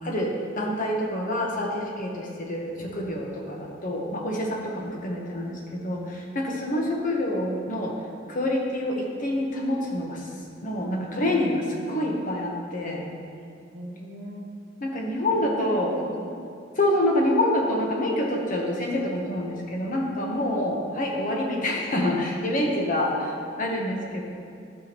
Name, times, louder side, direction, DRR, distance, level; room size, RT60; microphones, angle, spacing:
voice 1, 0.0-8.0 8.3-10.3 10.6-13.1 14.8-15.9 16.7-24.2, left 1 dB, 45° left, -1 dB, 1.3 m, -27 dB
voice 2, 13.7-14.5 15.3-16.4, equal, 85° right, -1 dB, 1.4 m, -38 dB
13.0 x 6.1 x 3.1 m, 2.4 s
head